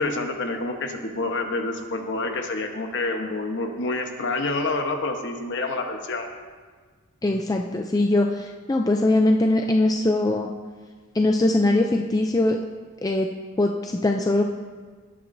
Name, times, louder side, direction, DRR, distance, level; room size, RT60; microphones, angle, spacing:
voice 1, 0.0-6.3, left 2 dB, 55° left, 4 dB, 1.1 m, -27 dB
voice 2, 7.2-10.5 11.1-12.6 13.0-13.3 13.6-14.4, left 2 dB, 15° left, 2 dB, 0.4 m, -21 dB
18.0 x 8.7 x 2.7 m, 1.5 s
head